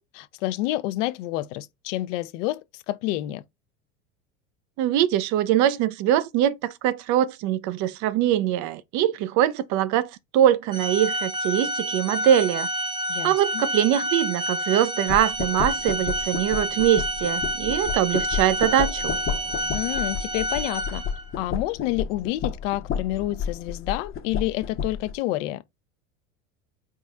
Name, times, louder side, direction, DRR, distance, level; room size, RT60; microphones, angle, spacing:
voice 1, 0.0-3.4 13.1-13.6 19.7-21.0 21.4-25.6, left 16 dB, 65° left, 0.6 m, -29 dB
voice 2, 4.8-12.7 13.2-19.2, right 11 dB, 45° right, 0.5 m, -22 dB
Organ, 10.7-21.4, equal, 10° right, 0.7 m, -29 dB
sound 1, 15.1-25.2, left 7 dB, 30° left, 0.8 m, -32 dB
4.2 x 3.6 x 2.4 m
hypercardioid pair, 90°, 41 cm